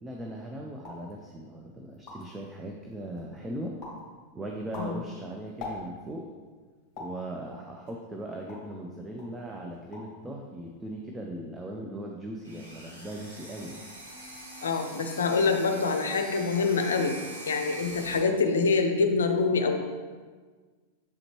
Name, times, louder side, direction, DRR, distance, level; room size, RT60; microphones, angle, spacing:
voice 1, 0.0-3.8 4.3-6.3 7.0-13.8, right 1 dB, 15° right, 0 dB, 0.6 m, -39 dB
sound 1, 0.8-1.1 1.6-1.7 1.9-2.4 2.9-3.4 3.8-4.1 4.5-6.2 7.0-7.2 7.9-8.8 9.2-9.4 9.7-10.2 10.5-11.0, left 2 dB, 35° left, 1.6 m, -43 dB
sound 2, 12.4-18.2, equal, 80° right, 1.3 m, -43 dB
voice 2, 14.6-17.2 17.5-19.8, left 4 dB, 65° left, 6 dB, 0.6 m, -25 dB
7.0 x 5.0 x 3.1 m, 1.5 s
figure-of-eight pair, 90°, 0 cm